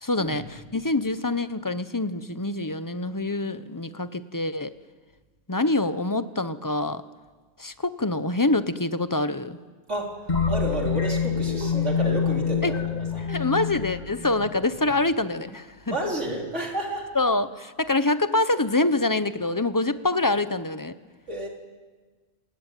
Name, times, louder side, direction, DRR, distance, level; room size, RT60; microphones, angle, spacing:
voice 1, 0.0-4.7 5.5-7.0 7.6-9.6 12.6-12.7 13.3-16.0 17.1-20.9, left 2 dB, 20° left, 12 dB, 0.8 m, -25 dB
sound 1, 10.3-15.0, left 6 dB, 40° left, 2.4 m, -26 dB
voice 2, 10.5-13.3 14.3-14.5 15.9-17.1 21.3-21.5, right 1 dB, 80° right, 0 dB, 4.1 m, -31 dB
28.0 x 20.0 x 9.1 m, 1.4 s
omnidirectional pair, 1.2 m